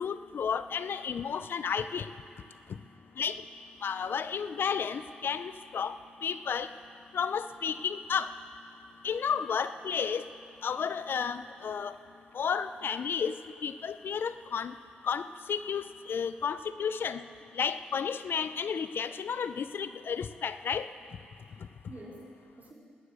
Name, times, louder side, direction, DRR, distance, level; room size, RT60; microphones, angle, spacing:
voice 1, 0.0-2.1 3.2-3.4 3.8-6.0 6.2-6.7 7.1-8.3 9.0-10.2 10.6-11.9 12.3-13.3 13.6-14.7 15.0-15.2 15.5-17.2 17.5-20.9, left 7 dB, 65° left, 12 dB, 0.6 m, -32 dB
voice 2, 2.4-2.8 21.5-22.7, right 1 dB, 45° right, -4 dB, 4.5 m, -50 dB
19.0 x 9.5 x 6.6 m, 2.3 s
supercardioid pair, 50°, 4 cm